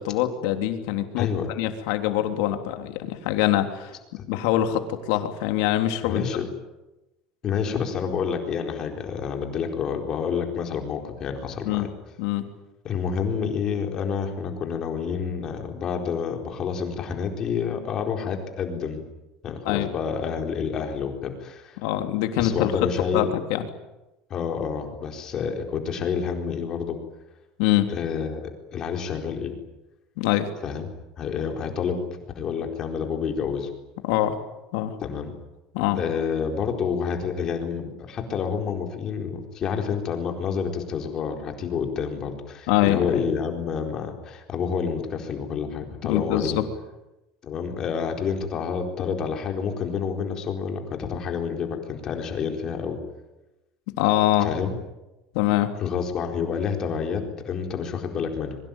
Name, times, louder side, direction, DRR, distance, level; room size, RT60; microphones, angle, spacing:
voice 1, 0.0-1.3 1.6-3.9 4.3-6.2 11.6-11.9 12.2-12.4 19.6-19.9 21.8-23.7 27.6-27.9 30.2-30.5 34.1-34.4 34.7-34.9 35.7-36.0 42.7-43.2 46.0-46.7 54.0-54.5 55.3-55.7, left 13 dB, 70° left, 6 dB, 3.4 m, -24 dB
voice 2, 1.2-1.5 4.1-4.2 6.0-6.5 7.4-11.9 12.8-19.1 19.4-21.8 22.4-23.3 24.3-27.0 27.9-29.6 30.6-30.9 31.2-32.0 32.3-33.7 35.0-35.3 35.9-46.6 47.4-53.0 54.4-54.7 55.8-58.6, left 6 dB, 30° left, 3 dB, 4.3 m, -28 dB
26.0 x 23.5 x 9.2 m, 0.98 s
cardioid pair, 175°, 2 cm